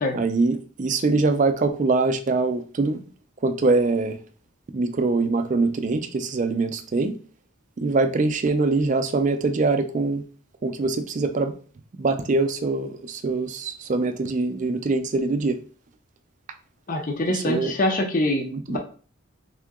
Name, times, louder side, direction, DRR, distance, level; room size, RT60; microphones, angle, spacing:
voice 1, 0.1-3.0 3.4-4.2 4.7-7.2 7.8-10.2 10.6-11.5 11.9-15.6 17.3-17.7 18.4-18.8, right 3 dB, 35° right, 8 dB, 0.3 m, -23 dB
voice 2, 16.9-18.8, left 1 dB, 35° left, 2 dB, 0.5 m, -24 dB
3.7 x 2.7 x 3.5 m, 0.41 s
head